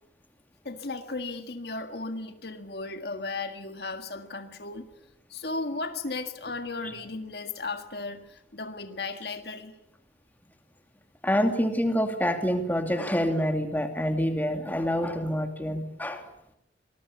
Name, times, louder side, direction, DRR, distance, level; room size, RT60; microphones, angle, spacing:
voice 1, 0.7-4.9 5.3-9.8, left 3 dB, 65° left, 8 dB, 1.8 m, -35 dB
voice 2, 11.2-16.2, equal, 10° left, 6 dB, 2.6 m, -26 dB
25.5 x 21.0 x 8.5 m, 0.83 s
head